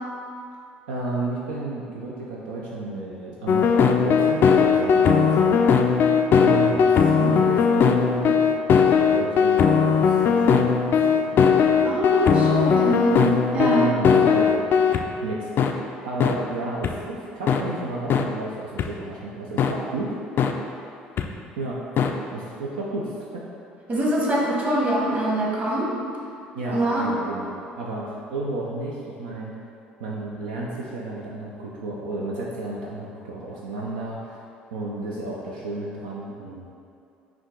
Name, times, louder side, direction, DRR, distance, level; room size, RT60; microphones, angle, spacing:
voice 1, 0.9-5.9 6.3-8.6 9.1-11.4 13.6-14.5 15.2-20.2 21.6-21.8 22.3-23.5 26.5-29.5 30.0-34.5 34.7-36.7, right 2 dB, 80° right, -4 dB, 0.5 m, -32 dB
sound 1, 3.5-15.0 15.6-15.7 16.2-16.3 16.8-16.9 17.5-17.6 18.1-18.2 18.8-18.9 19.6-19.7 20.4-20.5 21.2-21.3 22.0-22.1, left 6 dB, 50° left, 0.3 m, -18 dB
voice 2, 11.8-13.9 23.9-25.9 26.7-27.1, right 1 dB, 35° right, -4 dB, 1.2 m, -24 dB
5.7 x 2.4 x 3.8 m, 2.6 s
hypercardioid pair, 60°, 5 cm